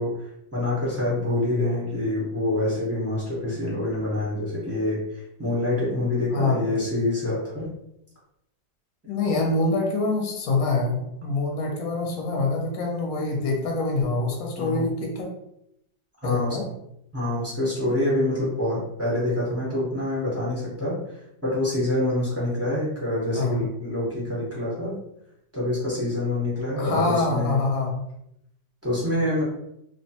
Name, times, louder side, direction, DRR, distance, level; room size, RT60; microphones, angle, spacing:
voice 1, 0.0-7.7 14.6-14.9 16.2-16.6 17.1-25.0 25.5-27.7 28.8-29.4, left 1 dB, 15° right, -7 dB, 0.5 m, -26 dB
voice 2, 9.1-15.3 16.2-16.7 23.3-23.6 26.8-28.0, left 3 dB, 65° left, 0 dB, 1.0 m, -25 dB
2.9 x 2.1 x 2.8 m, 0.79 s
omnidirectional pair, 2.0 m